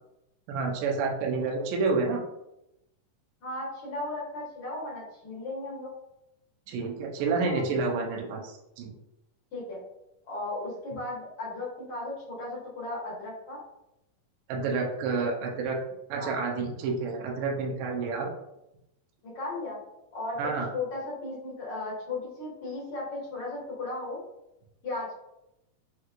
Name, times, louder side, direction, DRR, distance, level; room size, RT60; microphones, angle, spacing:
voice 1, 0.5-2.2 6.7-8.9 14.5-15.8 16.1-18.3 20.4-20.7, right 4 dB, 80° right, 0 dB, 2.3 m, -29 dB
voice 2, 3.4-5.9 7.5-7.6 9.5-9.8 10.3-13.6 16.2-16.3 19.2-19.8 20.1-24.2 24.8-25.1, left 2 dB, 55° left, -7 dB, 1.8 m, -36 dB
5.5 x 3.0 x 2.4 m, 0.87 s
omnidirectional pair, 4.0 m